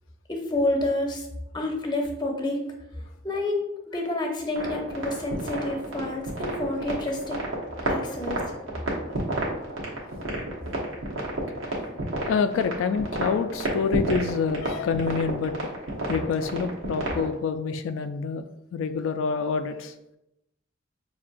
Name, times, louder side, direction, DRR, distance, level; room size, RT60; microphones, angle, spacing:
voice 1, 0.3-1.3 1.5-2.6 3.2-7.4 7.9-8.4, left 2 dB, 25° left, 0.7 m, -29 dB
sound 1, 4.6-17.3, right 1 dB, 85° right, 1.1 m, -30 dB
voice 2, 12.2-15.7 16.1-20.0, left 5 dB, 90° left, 0.3 m, -27 dB
5.7 x 2.8 x 2.5 m
head